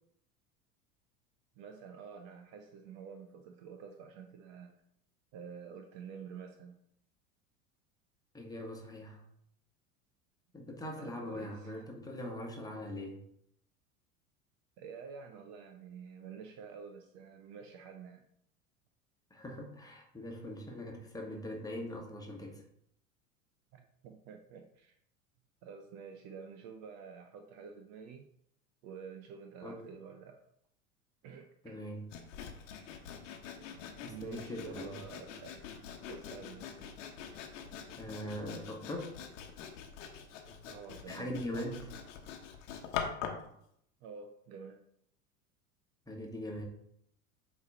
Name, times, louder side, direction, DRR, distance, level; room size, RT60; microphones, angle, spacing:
voice 1, 1.6-4.7 5.3-6.8 11.0-11.7 14.8-18.2 23.7-24.9 25.6-28.3 28.8-30.4 31.2-31.8 34.0-35.7 36.1-36.9 40.7-41.3 44.0-44.8, right 6 dB, 40° right, 5 dB, 0.7 m, -49 dB
voice 2, 8.3-9.2 10.5-13.2 19.3-22.6 29.6-29.8 31.6-32.1 34.0-35.0 38.0-39.1 41.1-41.9 46.1-46.6, left 1 dB, 10° left, 0 dB, 1.4 m, -41 dB
Sawing, 32.1-43.5, left 7 dB, 55° left, 1.1 m, -44 dB
8.2 x 3.2 x 4.1 m, 0.72 s
figure-of-eight pair, 80°, 43 cm